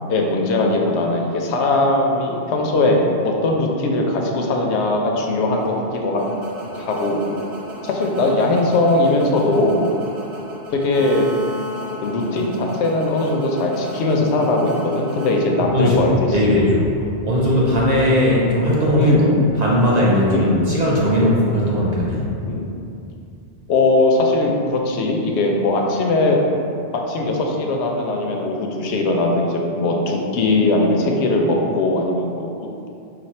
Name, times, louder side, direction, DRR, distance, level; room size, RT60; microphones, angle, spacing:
voice 1, 0.1-5.8 6.0-6.2 6.7-7.2 7.8-9.9 10.7-11.3 12.0-16.1 19.0-19.5 20.3-20.7 22.4-22.6 23.7-26.4 26.9-32.9, left 2 dB, 80° left, 0 dB, 0.9 m, -20 dB
sound 1, 5.6-16.0, equal, 70° right, 0.9 m, -34 dB
voice 2, 15.7-16.9 17.2-19.3 19.6-22.3, equal, 50° right, -5 dB, 0.6 m, -18 dB
4.2 x 2.3 x 4.2 m, 2.6 s
omnidirectional pair, 1.2 m